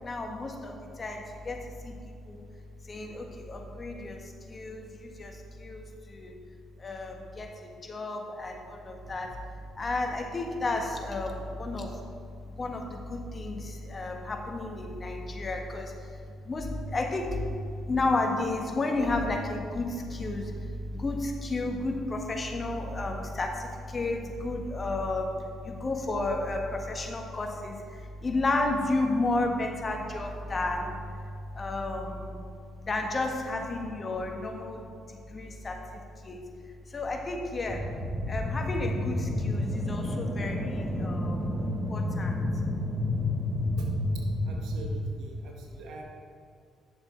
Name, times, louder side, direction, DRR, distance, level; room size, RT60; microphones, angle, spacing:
voice 1, 0.0-2.4 2.9-4.2 4.5-6.4 6.8-9.3 9.8-11.9 12.5-16.2 16.4-17.6 17.9-25.3 25.6-32.4 32.8-36.4 36.9-37.8 38.3-41.5 41.9-42.4, left 2 dB, 35° left, 2 dB, 1.6 m, -32 dB
sound 1, 37.7-45.0, left 1 dB, 10° right, 1.7 m, -30 dB
voice 2, 44.4-46.0, right 2 dB, 70° right, 1 dB, 1.7 m, -45 dB
10.0 x 7.0 x 5.2 m, 2.3 s
hypercardioid pair, 55°, 0 cm